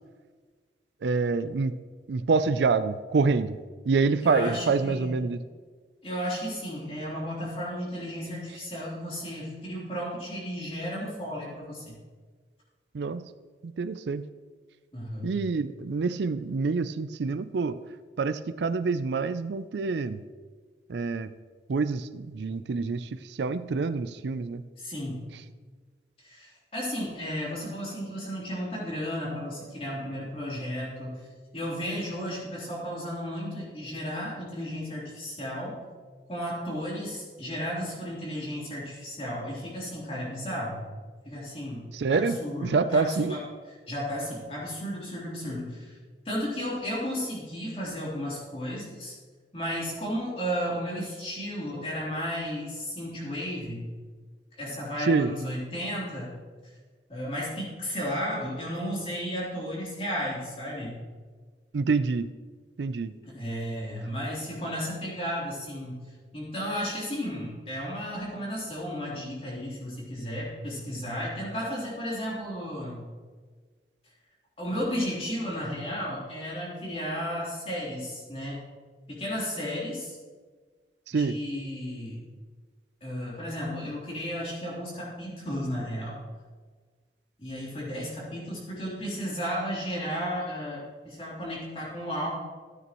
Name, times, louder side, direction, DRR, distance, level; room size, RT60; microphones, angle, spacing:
voice 1, 1.0-1.8 2.1-3.6 3.9-5.4 12.9-13.3 13.6-14.3 15.2-17.8 18.2-20.2 20.9-21.3 21.7-24.6 41.9-43.4 55.1-55.3 61.7-62.3 62.8-63.2 81.1-81.4, right 4 dB, 75° right, 13 dB, 0.4 m, -27 dB
voice 2, 4.2-5.1 6.0-12.0 14.9-15.3 24.8-25.3 26.2-31.2 31.5-35.8 36.3-40.8 41.3-43.4 43.9-46.0 46.3-49.2 49.5-53.9 54.6-56.3 57.1-61.0 63.3-66.0 66.3-73.1 74.6-78.6 79.1-80.2 81.1-82.2 83.0-86.2 87.4-92.3, equal, 35° left, -5 dB, 3.3 m, -34 dB
13.5 x 9.4 x 3.0 m, 1.5 s
head